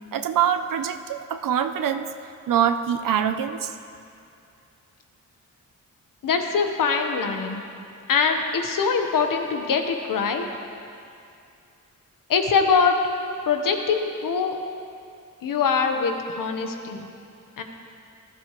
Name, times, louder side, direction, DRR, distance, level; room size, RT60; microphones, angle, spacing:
voice 1, 0.1-2.1 2.5-3.7, right 9 dB, 85° right, 8 dB, 0.6 m, -24 dB
voice 2, 6.2-7.6 8.1-10.5 12.3-13.0 13.5-14.6 15.4-17.1 17.6-17.7, left 5 dB, 85° left, 4 dB, 1.1 m, -23 dB
19.5 x 13.0 x 3.1 m, 2.5 s
wide cardioid pair, 100°, 32 cm